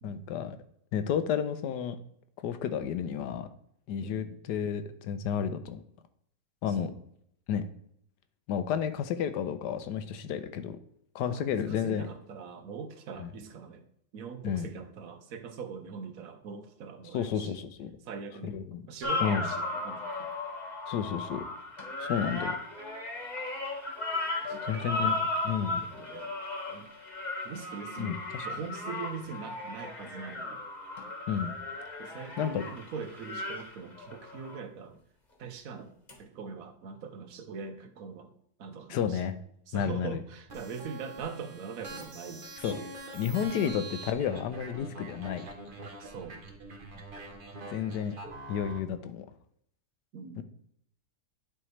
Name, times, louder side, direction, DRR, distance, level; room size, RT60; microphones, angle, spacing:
voice 1, 0.0-0.6 0.9-2.0 2.4-3.5 3.9-5.8 6.6-6.9 7.5-7.6 8.5-10.8 11.1-12.0 13.2-13.3 14.4-14.7 17.1-17.9 18.4-18.8 19.2-19.5 20.9-21.4 22.0-22.5 24.4-25.2 25.4-25.8 28.0-28.5 31.3-31.6 32.4-32.6 38.9-39.3 39.7-40.2 42.6-42.8 43.1-45.5 47.7-48.1 48.5-49.3 50.4-50.5, left 8 dB, 80° left, 11 dB, 1.2 m, -31 dB
voice 2, 4.0-4.4 6.7-6.9 11.3-13.8 14.1-17.5 18.0-18.6 18.9-20.3 24.5-25.3 25.6-26.3 26.7-26.9 27.4-30.6 32.0-35.0 35.4-35.9 36.2-38.3 38.6-39.3 39.7-43.0 43.5-43.8 46.0-46.4 50.1-50.4, right 5 dB, 65° right, 8 dB, 1.0 m, -42 dB
sound 1, 19.0-34.6 36.1-36.2, left 2 dB, 30° left, 1.3 m, -35 dB
sound 2, 40.5-48.8, right 2 dB, 40° right, 0.9 m, -45 dB
10.0 x 4.5 x 3.2 m, 0.71 s
omnidirectional pair, 1.8 m